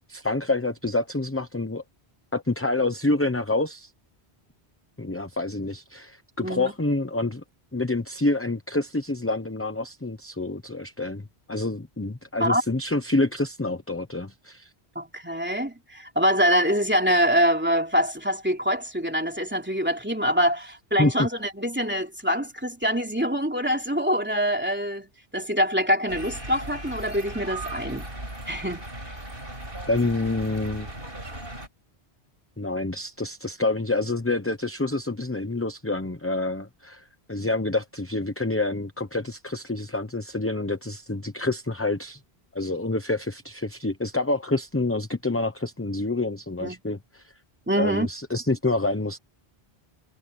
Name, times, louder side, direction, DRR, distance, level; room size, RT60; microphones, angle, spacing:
voice 1, 0.1-1.8 2.3-3.9 5.0-7.4 7.7-14.7 21.0-21.3 29.9-30.9 32.6-42.2 42.5-47.3 47.8-49.2, left 2 dB, 15° left, 0.9 m, -27 dB
voice 2, 6.4-6.7 12.4-12.6 14.9-25.1 25.3-28.1 28.5-28.8 46.6-46.8 47.7-48.1, equal, 10° right, 3.2 m, -24 dB
sound 1, 26.1-31.7, right 1 dB, 60° right, 6.7 m, -37 dB
omnidirectional pair, 1.1 m